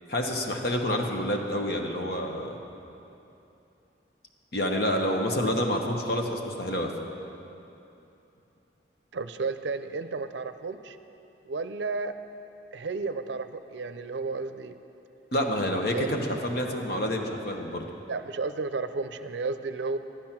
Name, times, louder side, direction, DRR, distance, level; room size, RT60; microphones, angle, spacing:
voice 1, 0.1-2.6 4.5-6.9 15.3-17.9, left 1 dB, 55° left, 2 dB, 1.1 m, -28 dB
voice 2, 9.1-11.0 11.5-12.1 12.7-14.8 15.9-16.4 18.1-20.0, right 4 dB, 70° right, 10 dB, 0.5 m, -32 dB
11.5 x 10.5 x 5.9 m, 2.8 s
head